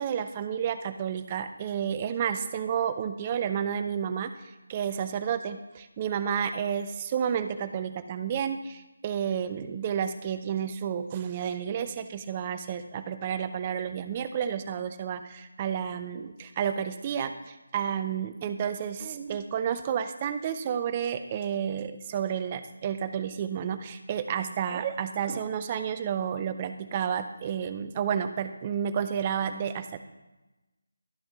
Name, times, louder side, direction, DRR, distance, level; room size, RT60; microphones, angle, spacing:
voice 1, 0.0-4.3 4.7-30.0, right 8 dB, 25° right, 11 dB, 0.4 m, -31 dB
12.0 x 7.1 x 3.1 m, 1.1 s
figure-of-eight pair, 155°, 0 cm